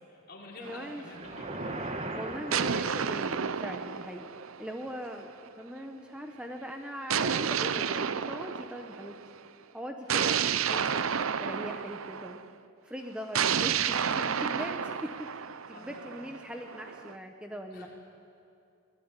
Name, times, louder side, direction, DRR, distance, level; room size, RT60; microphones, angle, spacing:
voice 1, 0.1-1.8 13.9-14.4 15.7-16.2 17.7-17.9, left 2 dB, 50° left, -3 dB, 5.4 m, -49 dB
voice 2, 0.6-1.0 2.1-4.3 4.6-9.1 9.7-10.4 10.7-11.0 11.4-12.4 12.8-17.9, equal, 5° right, 4 dB, 1.1 m, -41 dB
sound 1, 0.6-1.7 2.5-5.1 7.1-9.2 10.1-12.4 13.3-17.1, right 7 dB, 80° right, 0.7 m, -31 dB
sound 2, 1.1-3.5, right 2 dB, 30° right, 1.7 m, -38 dB
24.5 x 19.5 x 9.8 m, 2.6 s
head